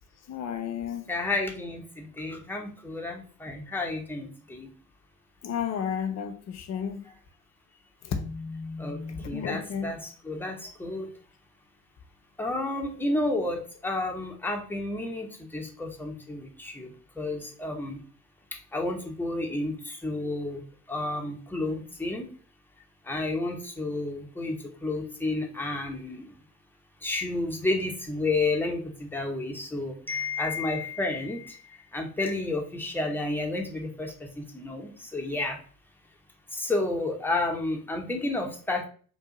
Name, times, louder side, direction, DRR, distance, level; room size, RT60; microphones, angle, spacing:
voice 1, 0.3-1.0 5.4-7.0 8.0-9.9, left 7 dB, 40° left, 8 dB, 0.6 m, -33 dB
voice 2, 1.1-4.7 8.8-9.0 9.2-11.1 12.4-18.0 18.5-20.6 20.9-22.3 23.0-26.3 27.0-35.6 36.5-38.9, left 2 dB, 5° left, 1 dB, 1.0 m, -31 dB
3.7 x 2.7 x 3.9 m, 0.42 s
figure-of-eight pair, 55°, 43 cm